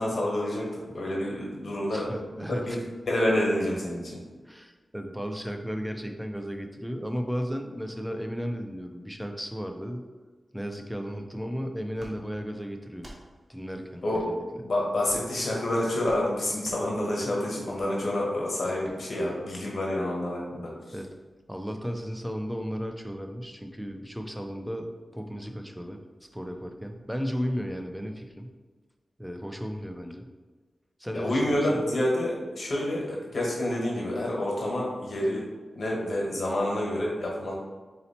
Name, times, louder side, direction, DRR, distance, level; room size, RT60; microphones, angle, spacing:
voice 1, 0.0-4.2 14.0-14.3 14.6-20.7 31.1-35.5 35.7-37.5, left 1 dB, 60° left, -3 dB, 1.3 m, -28 dB
voice 2, 1.9-2.8 4.5-10.0 10.5-13.1 13.5-14.4 20.9-21.1 21.5-28.5 29.2-30.3 31.0-31.8, equal, 5° right, 4 dB, 0.5 m, -34 dB
sound 1, 11.9-12.1 12.9-13.2 14.1-14.3 15.0-15.3 16.0-16.2 16.6-16.8 17.7-17.9 18.8-19.0, right 1 dB, 40° right, 1.0 m, -46 dB
4.1 x 2.8 x 4.2 m, 1.3 s
wide cardioid pair, 70°, 0 cm